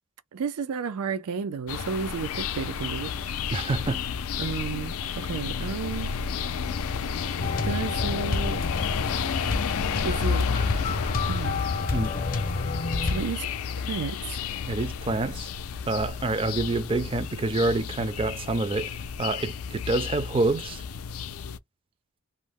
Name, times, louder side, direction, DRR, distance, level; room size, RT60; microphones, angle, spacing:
voice 1, 0.3-3.1 4.4-6.1 7.6-8.6 10.0-10.5 11.3-11.6 13.0-13.5 13.8-14.4, right 5 dB, 90° right, 0.4 m, -32 dB
sound 1, 1.7-21.6, left 6 dB, 75° left, 0.4 m, -31 dB
voice 2, 3.5-4.0 11.9-12.2 14.7-15.5 15.9-20.8, right 2 dB, 25° right, 0.4 m, -27 dB
sound 2, 7.4-13.2, left 3 dB, 40° left, 0.7 m, -30 dB
2.6 x 2.0 x 3.4 m
head